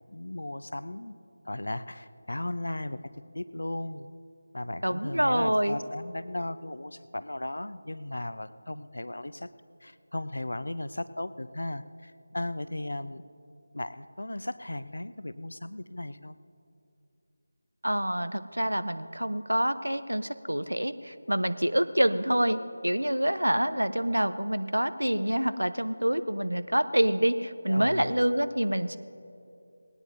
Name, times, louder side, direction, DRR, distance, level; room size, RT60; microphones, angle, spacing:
voice 1, 0.1-1.2 1.4-4.1 4.5-9.5 9.8-13.2 13.7-16.4 27.7-28.1, left 1 dB, 65° left, 15 dB, 0.5 m, -36 dB
voice 2, 4.8-5.8 17.8-29.0, right 1 dB, 80° right, 13 dB, 0.7 m, -27 dB
19.5 x 18.0 x 2.7 m, 2.6 s
figure-of-eight pair, 165°, 0 cm